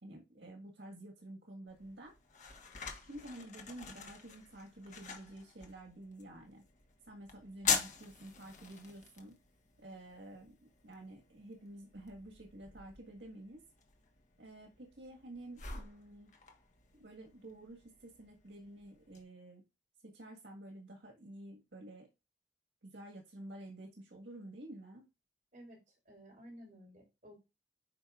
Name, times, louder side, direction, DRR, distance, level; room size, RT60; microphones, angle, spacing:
voice 1, 0.0-2.1 3.0-6.6 7.0-9.4 9.8-13.6 14.4-16.3 17.0-19.6 20.0-22.1 22.8-25.1, right 1 dB, 85° right, 1 dB, 1.7 m, -50 dB
sound 1, 1.7-19.2, left 6 dB, 45° left, 1.4 m, -44 dB
voice 2, 25.5-27.3, equal, 45° right, 0 dB, 4.3 m, -55 dB
8.5 x 5.4 x 2.5 m, 0.26 s
head